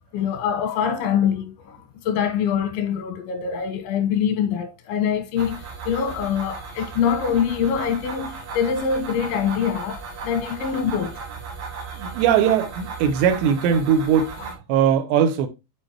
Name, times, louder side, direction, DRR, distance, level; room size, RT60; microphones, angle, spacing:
voice 1, 0.1-1.8 2.1-11.2, left 7 dB, 90° left, 3.5 m, -24 dB
sound 1, 5.4-14.5, right 4 dB, 50° right, 2.9 m, -36 dB
voice 2, 12.0-15.5, right 8 dB, 85° right, 3.0 m, -20 dB
7.9 x 4.6 x 2.9 m
omnidirectional pair, 5.1 m